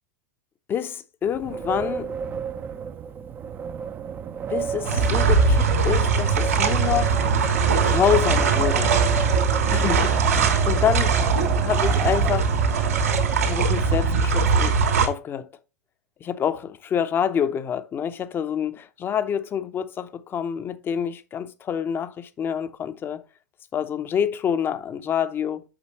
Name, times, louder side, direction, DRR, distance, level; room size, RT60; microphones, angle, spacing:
voice 1, 0.7-2.1 4.5-7.2 7.9-9.0 9.7-11.2 11.6-12.5 13.4-14.8 15.0-15.5 16.2-23.2 23.7-25.6, left 8 dB, 25° left, 0.8 m, -27 dB
Wind, 1.2-13.9, right 7 dB, 25° right, 0.6 m, -32 dB
sound 1, 4.8-15.1, right 5 dB, 70° right, 3.0 m, -21 dB
8.7 x 6.1 x 3.0 m
figure-of-eight pair, 95°, 8 cm